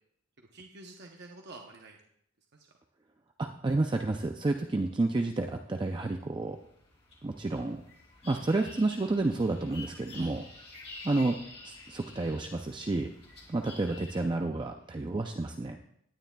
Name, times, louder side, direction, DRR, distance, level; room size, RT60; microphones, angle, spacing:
voice 1, 0.4-2.0 2.5-2.7 10.2-10.4 14.8-15.1, right 2 dB, 55° right, 1 dB, 0.8 m, -49 dB
voice 2, 3.4-6.6 7.2-7.8 8.2-10.5 11.0-13.1 13.5-15.8, right 2 dB, 25° right, 4 dB, 0.4 m, -30 dB
sound 1, 5.4-14.3, left 2 dB, 30° left, 2.3 m, -49 dB
18.0 x 9.7 x 2.3 m, 0.72 s
head